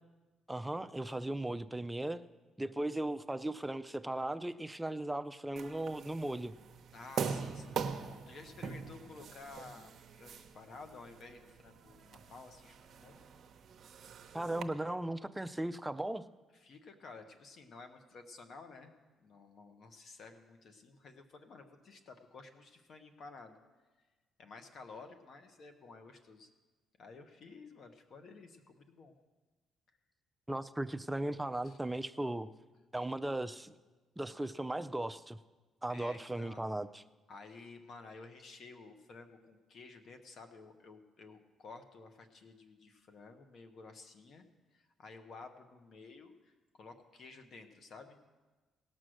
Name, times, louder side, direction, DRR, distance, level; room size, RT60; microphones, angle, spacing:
voice 1, 0.5-2.2 2.6-6.5 14.3-16.2 30.5-32.5 32.9-33.7 34.2-35.4 35.8-37.0, right 1 dB, 10° right, 11 dB, 0.4 m, -37 dB
sound 1, 5.6-14.6, right 6 dB, 55° right, 0.8 m, -43 dB
voice 2, 6.9-13.2 16.6-18.9 19.2-23.6 24.4-26.5 27.0-29.1 31.6-31.8 35.9-36.6 37.3-44.4 44.7-48.2, left 4 dB, 55° left, 7 dB, 1.0 m, -53 dB
17.5 x 6.2 x 6.4 m, 1.3 s
cardioid pair, 120°, 0 cm